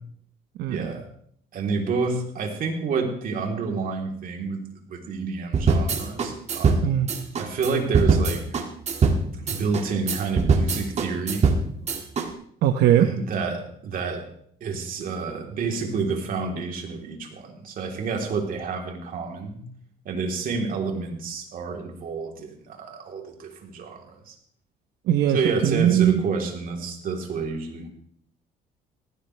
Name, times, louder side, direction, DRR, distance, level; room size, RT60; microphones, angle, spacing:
voice 1, 0.7-1.1 1.5-7.0 7.4-8.4 9.4-11.4 13.0-14.2 14.6-19.6 20.1-24.3 25.3-27.9, right 4 dB, 55° right, 2 dB, 3.6 m, -29 dB
sound 1, 5.5-12.3, right 4 dB, 40° right, 2.1 m, -22 dB
voice 2, 12.6-13.1 25.1-25.4 25.6-26.2, right 11 dB, 80° right, 7 dB, 1.0 m, -19 dB
19.0 x 16.5 x 3.4 m, 0.65 s
cardioid pair, 110°, 17 cm